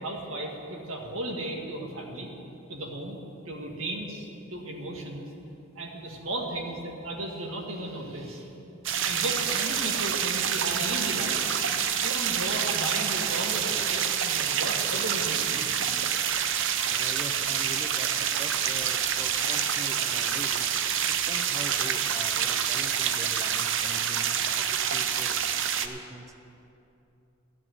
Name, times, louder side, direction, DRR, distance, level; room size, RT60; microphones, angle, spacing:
voice 1, 0.0-2.3 2.7-3.2 3.5-5.3 5.8-8.5 9.0-11.5 12.0-15.7, right 1 dB, 90° right, 0 dB, 1.8 m, -35 dB
sound 1, 8.8-25.9, right 8 dB, 65° right, 0.6 m, -27 dB
voice 2, 16.9-25.4 25.8-26.3, right 1 dB, 15° right, 4 dB, 0.6 m, -43 dB
13.5 x 6.1 x 9.2 m, 2.8 s
head